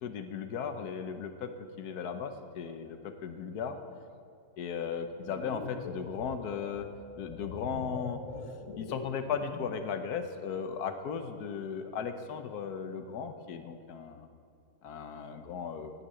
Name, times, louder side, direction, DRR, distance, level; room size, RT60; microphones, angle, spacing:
voice 1, 0.0-1.5 1.8-3.8 4.6-6.9 7.2-8.2 8.8-14.3 14.8-15.9, left 6 dB, 80° left, 8 dB, 1.4 m, -36 dB
sound 1, 5.1-9.9, left 3 dB, 60° left, 1.4 m, -43 dB
9.8 x 9.5 x 8.9 m, 2.3 s
omnidirectional pair, 1.6 m